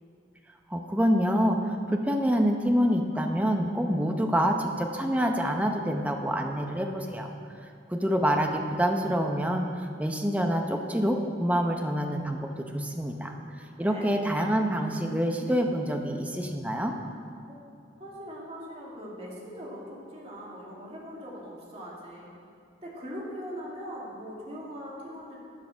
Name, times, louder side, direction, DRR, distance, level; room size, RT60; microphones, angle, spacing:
voice 1, 0.7-7.3 7.9-13.3 13.8-16.9, equal, 10° right, 3 dB, 0.7 m, -26 dB
voice 2, 13.8-14.1 17.5-17.6 18.0-22.3 22.8-25.4, equal, 30° right, -4 dB, 2.3 m, -41 dB
11.5 x 7.6 x 6.2 m, 2.4 s
head